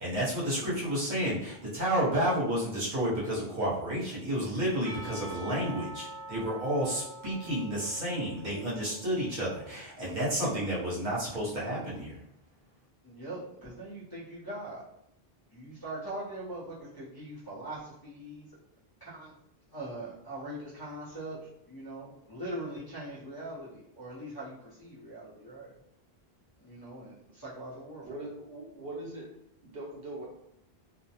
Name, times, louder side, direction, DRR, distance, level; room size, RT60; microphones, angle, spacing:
voice 1, 0.0-12.2, right 1 dB, 50° right, -7 dB, 1.0 m, -31 dB
Percussion / Church bell, 4.8-9.9, right 2 dB, 15° right, 0.7 m, -45 dB
voice 2, 13.0-14.8 15.5-18.5 19.0-19.3 19.7-25.7 26.6-28.2, right 1 dB, 25° left, -11 dB, 0.7 m, -41 dB
voice 3, 28.0-29.3 29.6-30.3, right 2 dB, 65° right, -3 dB, 0.8 m, -41 dB
2.4 x 2.1 x 2.8 m, 0.75 s
omnidirectional pair, 1.1 m